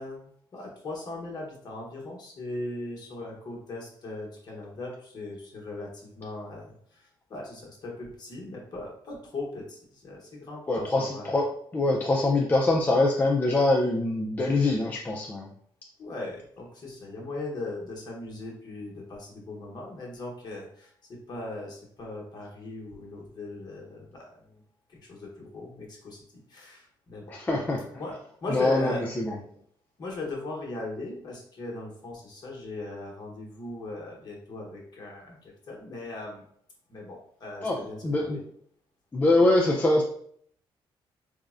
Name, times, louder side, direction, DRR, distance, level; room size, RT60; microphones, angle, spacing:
voice 1, 0.0-11.4 16.0-24.6 24.9-26.2 26.5-27.2 27.9-29.0 30.0-36.5 36.9-38.4, left 2 dB, 45° left, -2 dB, 0.9 m, -38 dB
voice 2, 10.7-11.5 11.7-15.5 27.3-27.9 28.5-29.4 37.6-38.4 39.1-40.0, left 2 dB, 20° left, -1 dB, 0.4 m, -24 dB
3.5 x 2.0 x 2.4 m, 0.62 s
cardioid pair, 105°, 9 cm